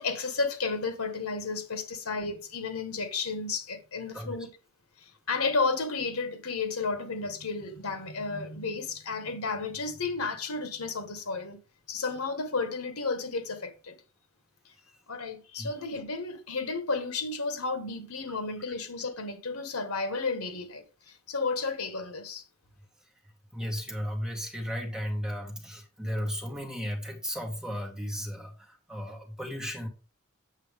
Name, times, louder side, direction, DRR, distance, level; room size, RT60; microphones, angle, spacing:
voice 1, 0.0-4.5 5.0-11.6 11.9-14.0 15.1-22.4, left 4 dB, 75° left, 1.4 m, -32 dB
voice 2, 4.1-4.5 14.8-15.0 15.6-15.7 18.3-18.4 23.0-29.9, equal, 5° right, 1.9 m, -35 dB
8.2 x 7.3 x 3.6 m
head